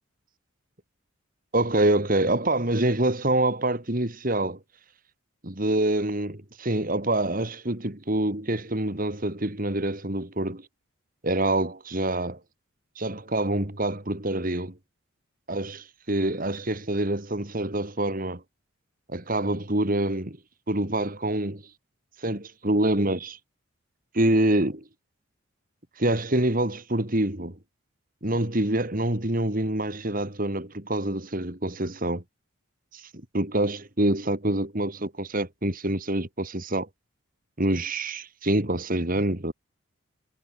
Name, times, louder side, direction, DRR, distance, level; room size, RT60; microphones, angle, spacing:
voice 1, 1.5-4.6 5.4-10.6 11.2-12.4 13.0-14.7 15.5-18.4 19.1-20.4 20.7-21.6 22.2-23.4 24.1-24.8 26.0-27.6 28.2-32.2 32.9-33.0 33.3-36.9 37.6-39.5, right 1 dB, 40° right, 2.5 m, -26 dB
head